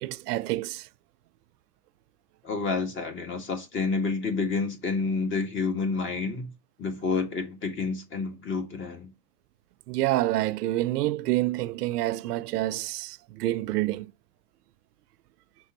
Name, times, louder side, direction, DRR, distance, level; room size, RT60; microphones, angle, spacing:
voice 1, 0.0-0.9 9.9-14.1, right 16 dB, 85° right, 0.6 m, -28 dB
voice 2, 2.4-6.5 6.8-9.1, left 4 dB, 25° left, 1.5 m, -29 dB
6.1 x 3.9 x 4.3 m
supercardioid pair, 120°, 46 cm